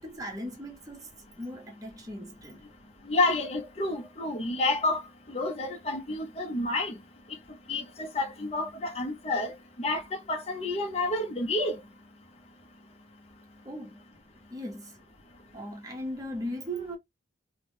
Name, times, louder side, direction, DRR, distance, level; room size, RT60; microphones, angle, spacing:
voice 1, 0.0-2.7 13.6-14.0 14.5-15.0 15.5-17.0, equal, 20° right, 0.8 m, -38 dB
voice 2, 3.1-5.0 5.3-7.0 7.7-9.5 9.8-11.8, left 2 dB, 35° left, 0.6 m, -29 dB
2.8 x 2.0 x 3.3 m
head